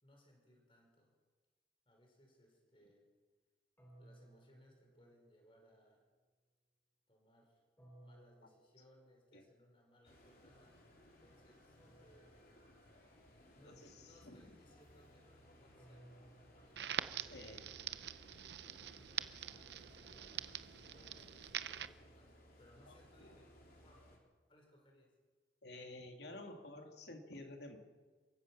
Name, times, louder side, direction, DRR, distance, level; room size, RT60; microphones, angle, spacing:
voice 1, 0.0-1.2 1.9-3.1 4.0-6.0 7.1-7.6 8.0-12.7 13.5-18.1 18.6-20.5 20.9-24.0 24.5-25.2, equal, 30° left, 1 dB, 5.3 m, -67 dB
sound 1, 3.8-5.8 7.8-9.6 11.8-13.6 15.8-18.0, right 1 dB, 10° left, 5.1 m, -64 dB
sound 2, 10.0-24.2, equal, 55° left, 3.8 m, -63 dB
voice 2, 13.6-14.5 17.2-17.6 22.9-23.4 25.6-27.8, left 2 dB, 75° left, 3 dB, 2.6 m, -52 dB
Crackle, 16.8-21.9, right 9 dB, 75° right, 0.7 m, -45 dB
28.0 x 15.5 x 6.2 m, 1.4 s
head